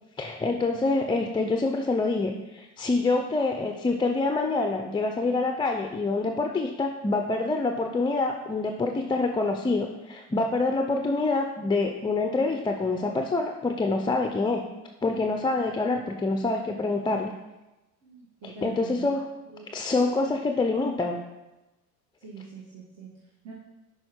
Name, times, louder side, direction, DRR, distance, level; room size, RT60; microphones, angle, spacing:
voice 1, 0.2-14.6 15.0-17.3 18.4-19.2 19.7-21.2, left 3 dB, 10° left, 4 dB, 0.4 m, -26 dB
voice 2, 18.0-20.4 22.2-23.5, right 4 dB, 40° right, -3 dB, 1.5 m, -44 dB
6.2 x 4.9 x 4.4 m, 1.0 s
hypercardioid pair, 80°, 39 cm